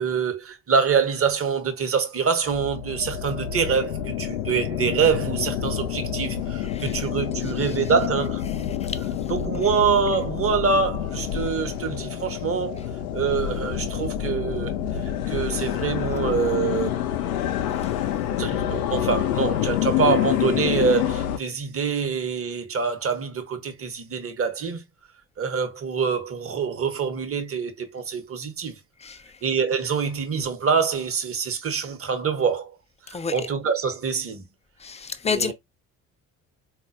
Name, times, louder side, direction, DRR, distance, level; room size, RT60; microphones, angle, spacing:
voice 1, 0.0-8.4 9.3-12.8 13.1-17.0 18.3-24.8 25.4-28.8 29.4-32.8 33.1-34.5 35.2-35.5, right 6 dB, 35° right, 1.0 m, -25 dB
sound 1, 2.4-21.4, left 10 dB, 85° left, 0.5 m, -27 dB
voice 2, 29.0-29.3 33.1-33.4 34.8-35.5, left 5 dB, 15° left, 0.5 m, -30 dB
3.8 x 2.3 x 2.5 m
hypercardioid pair, 50°, 41 cm